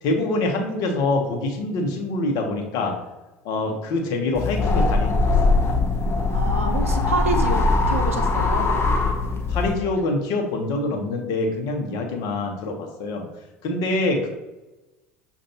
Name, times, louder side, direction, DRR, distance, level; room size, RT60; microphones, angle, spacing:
voice 1, 0.0-2.9 3.4-5.8 9.5-13.3 13.6-14.3, left 2 dB, 60° left, 2 dB, 1.0 m, -25 dB
Wind gust, 4.3-9.7, left 3 dB, 35° left, 0.7 m, -21 dB
voice 2, 6.3-8.7, right 4 dB, 85° right, 5 dB, 0.6 m, -28 dB
6.4 x 2.6 x 2.8 m, 1.1 s
hypercardioid pair, 70°, 7 cm